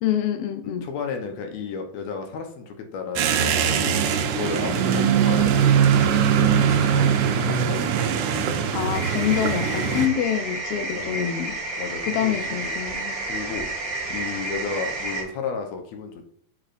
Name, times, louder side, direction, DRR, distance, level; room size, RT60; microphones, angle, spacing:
voice 1, 0.0-0.9 8.7-11.5 12.0-13.2, left 10 dB, 85° left, 8 dB, 1.3 m, -26 dB
voice 2, 0.6-4.0 4.3-5.9 6.3-8.0 10.9-11.4 11.8-12.8 13.3-13.7 14.1-16.2, left 5 dB, 70° left, 4 dB, 2.0 m, -33 dB
sound 1, 3.2-10.1, right 8 dB, 80° right, 2.2 m, -21 dB
sound 2, 8.9-15.2, right 2 dB, 45° right, 1.8 m, -30 dB
7.5 x 4.9 x 2.6 m, 0.66 s
omnidirectional pair, 3.6 m